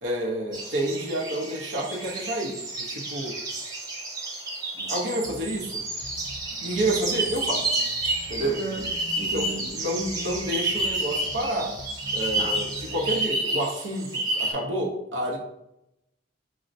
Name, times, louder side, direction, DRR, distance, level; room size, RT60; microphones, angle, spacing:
voice 1, 0.0-3.3 4.7-5.8 6.6-7.6 8.3-8.5 9.2-11.7 12.1-15.4, right 1 dB, 85° right, -1 dB, 0.9 m, -29 dB
sound 1, 0.5-14.5, right 2 dB, 20° right, 0.8 m, -30 dB
sound 2, 5.3-13.3, left 1 dB, 30° left, 0.6 m, -45 dB
voice 2, 8.4-9.7 12.4-12.6, right 4 dB, 45° right, 0 dB, 0.5 m, -32 dB
6.2 x 2.1 x 2.6 m, 0.84 s
head